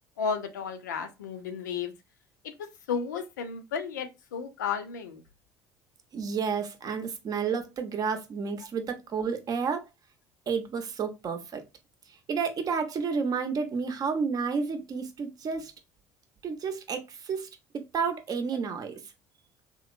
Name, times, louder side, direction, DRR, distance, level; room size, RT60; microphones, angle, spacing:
voice 1, 0.2-1.9 2.6-5.2, left 6 dB, 90° left, 0.4 m, -33 dB
voice 2, 6.1-9.8 10.5-11.6 12.3-15.7 16.4-17.5 17.7-19.0, right 5 dB, 40° right, 0.7 m, -31 dB
2.8 x 2.0 x 2.4 m
hypercardioid pair, 70°, 9 cm